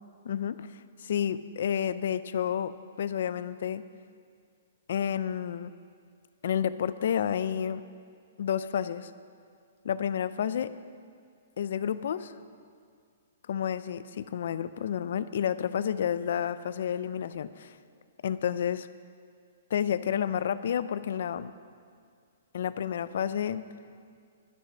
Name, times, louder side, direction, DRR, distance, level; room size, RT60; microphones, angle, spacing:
voice 1, 0.2-0.7 1.0-3.8 4.9-5.7 6.4-7.8 8.4-9.1 9.8-10.7 11.6-12.3 13.5-17.7 18.2-18.9 19.7-21.5 22.5-23.6, left 9 dB, 55° left, 14 dB, 0.5 m, -30 dB
12.0 x 9.8 x 6.1 m, 2.2 s
hypercardioid pair, 170°, 0 cm